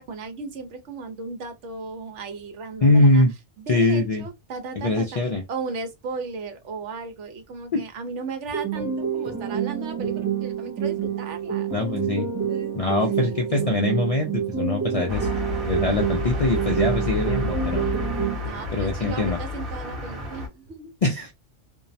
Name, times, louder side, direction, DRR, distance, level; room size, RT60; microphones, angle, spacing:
voice 1, 0.0-3.2 3.6-5.2 5.5-11.7 12.3-13.6 18.2-20.9, right 4 dB, 85° right, 1.0 m, -36 dB
voice 2, 2.8-3.3 3.7-4.3 4.8-5.4 7.7-7.8 11.7-12.3 12.7-15.3 15.7-17.9 18.7-19.4 21.0-21.3, left 2 dB, 55° left, 0.4 m, -22 dB
sound 1, 8.5-18.5, right 8 dB, 20° right, 0.5 m, -27 dB
sound 2, 15.1-20.5, left 3 dB, 55° right, 1.1 m, -30 dB
2.6 x 2.0 x 2.6 m
omnidirectional pair, 1.2 m